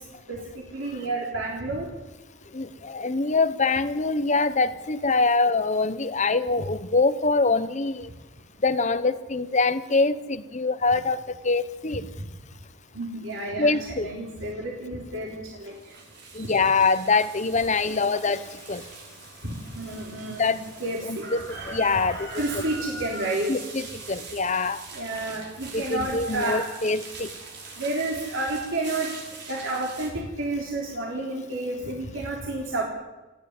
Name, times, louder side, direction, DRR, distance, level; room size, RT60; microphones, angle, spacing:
voice 1, 0.3-1.9 12.9-15.7 16.4-16.9 19.4-21.3 22.3-23.5 24.9-26.6 27.8-29.1 29.5-32.8, right 2 dB, 75° right, -2 dB, 3.9 m, -30 dB
voice 2, 2.5-8.1 8.6-12.0 13.6-14.1 16.3-18.8 20.4-20.6 21.1-22.3 23.5-24.8 25.7-27.3, left 3 dB, 35° left, 9 dB, 0.9 m, -24 dB
sound 1, 15.6-30.1, right 3 dB, 55° right, 5.5 m, -42 dB
28.5 x 10.0 x 9.9 m, 1.2 s
head